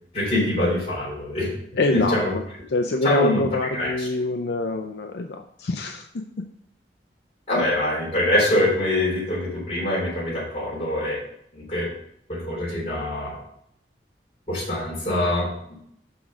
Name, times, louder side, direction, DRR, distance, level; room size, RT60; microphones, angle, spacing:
voice 1, 0.1-1.5 1.9-2.3 3.0-3.4 3.7-4.1 7.5-11.2 11.5-11.9 12.3-13.4 14.5-15.8, left 1 dB, 35° left, -5 dB, 3.5 m, -24 dB
voice 2, 1.8-2.4 2.7-6.1, left 2 dB, 70° left, 4 dB, 0.5 m, -25 dB
6.1 x 6.1 x 4.9 m, 0.71 s
head